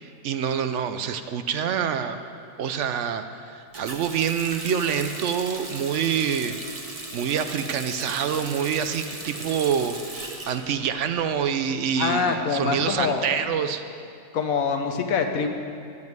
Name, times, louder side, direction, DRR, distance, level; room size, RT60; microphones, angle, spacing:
voice 1, 0.0-2.2 2.6-6.6 7.1-10.2 10.5-13.8, right 7 dB, 65° right, 9 dB, 0.9 m, -26 dB
Water tap faucet, 3.7-11.5 11.8-12.8, right 2 dB, 30° right, 1.1 m, -38 dB
voice 2, 12.0-13.2 14.3-15.5, left 5 dB, 90° left, 5 dB, 1.4 m, -24 dB
14.5 x 5.3 x 9.3 m, 2.4 s
omnidirectional pair, 1.4 m